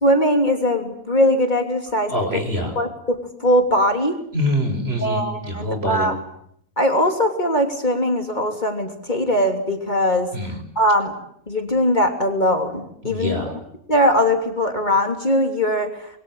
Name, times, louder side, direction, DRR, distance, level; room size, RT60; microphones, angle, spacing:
voice 1, 0.0-2.1 2.7-4.2 5.0-6.2 6.8-10.3 10.7-11.1 11.5-13.5 13.9-16.2, equal, 30° left, 4 dB, 3.3 m, -20 dB
voice 2, 2.1-2.8 4.3-6.1 10.3-10.6 13.0-13.5, left 1 dB, 45° right, 5 dB, 5.7 m, -24 dB
27.0 x 22.5 x 9.1 m, 0.69 s
omnidirectional pair, 1.5 m